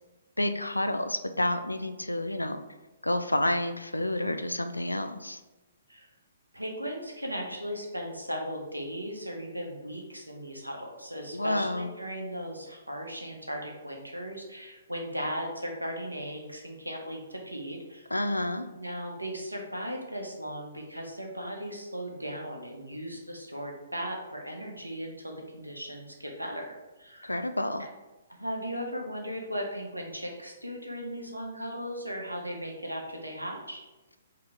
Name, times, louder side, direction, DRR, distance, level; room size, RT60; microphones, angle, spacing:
voice 1, 0.4-2.6 3.0-5.4 11.3-11.9 18.1-18.7 27.2-27.8, left 1 dB, 85° left, 8 dB, 0.4 m, -29 dB
voice 2, 6.5-18.1 18.8-26.7 27.0-27.3 28.3-33.8, equal, 90° right, 1 dB, 0.9 m, -37 dB
4.8 x 2.9 x 3.6 m, 1.1 s
figure-of-eight pair, 125°, 0 cm